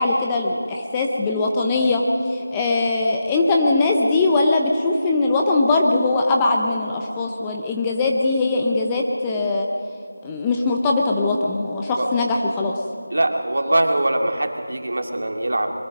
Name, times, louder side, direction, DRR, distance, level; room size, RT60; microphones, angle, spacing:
voice 1, 0.0-2.0 2.3-9.7 10.2-12.7, left 3 dB, 5° left, 1 dB, 0.6 m, -21 dB
voice 2, 13.1-15.7, right 1 dB, 60° right, 4 dB, 2.4 m, -22 dB
23.0 x 22.5 x 5.3 m, 2.5 s
figure-of-eight pair, 180°, 0 cm